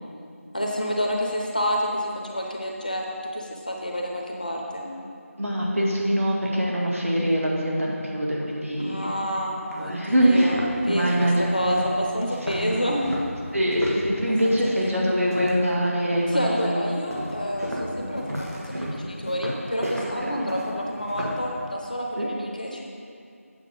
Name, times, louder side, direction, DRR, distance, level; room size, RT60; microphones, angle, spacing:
voice 1, 0.5-3.0 3.3-4.9 8.8-10.6 10.8-13.0 14.3-14.9 16.3-22.9, equal, 35° left, 0 dB, 0.7 m, -29 dB
voice 2, 5.4-9.1 9.7-10.6 10.9-11.8 12.5-12.8 13.5-16.2 16.6-17.0 18.0-18.1 20.2-20.5 22.2-22.3, equal, 65° right, -4 dB, 2.0 m, -24 dB
sound 1, 9.1-9.2 9.7-9.8 10.3-15.8 16.1-16.5 17.1-21.5, equal, 80° right, 1.9 m, -33 dB
8.4 x 7.1 x 5.3 m, 2.4 s
figure-of-eight pair, 175°, 8 cm